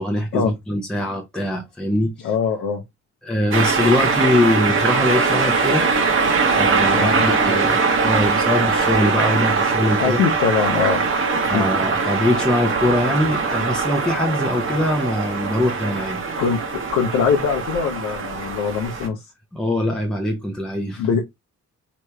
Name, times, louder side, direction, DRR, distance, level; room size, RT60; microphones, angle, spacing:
voice 1, 0.0-2.3 3.2-5.9 6.5-10.2 11.4-16.2 19.5-21.1, left 1 dB, ahead, 0.5 m, -22 dB
voice 2, 2.2-2.8 6.9-7.2 10.0-11.0 11.5-11.6 16.4-19.3 21.0-21.2, left 6 dB, 80° left, 0.6 m, -22 dB
sound 1, 3.5-19.1, right 4 dB, 45° right, 0.9 m, -21 dB
sound 2, 10.8-18.5, right 5 dB, 60° right, 1.3 m, -39 dB
3.2 x 2.9 x 2.2 m
cardioid pair, 90°, 30 cm